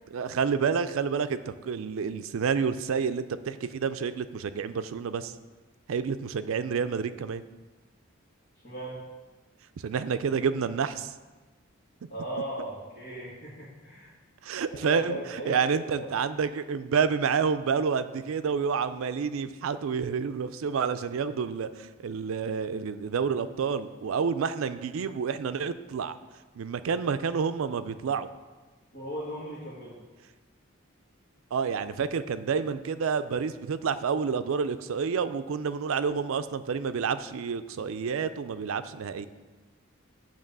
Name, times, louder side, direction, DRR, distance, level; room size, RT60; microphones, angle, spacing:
voice 1, 0.1-5.3 5.9-7.4 9.8-11.1 14.4-15.2 15.5-26.2 26.6-28.3 31.5-39.3, right 6 dB, 75° right, 12 dB, 0.4 m, -29 dB
voice 2, 8.6-9.0 12.1-14.1 14.7-16.1 28.9-30.0, right 1 dB, 55° left, -10 dB, 1.8 m, -37 dB
8.9 x 3.2 x 6.6 m, 1.3 s
head